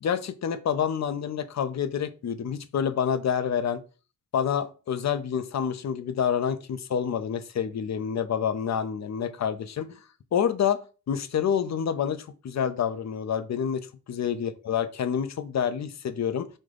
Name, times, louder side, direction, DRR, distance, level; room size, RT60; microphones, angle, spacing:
voice 1, 0.0-3.8 4.3-10.0 10.3-10.8 11.1-16.5, left 8 dB, 55° left, 13 dB, 0.4 m, -28 dB
3.2 x 2.1 x 3.7 m, 0.34 s
cardioid pair, 65°, 34 cm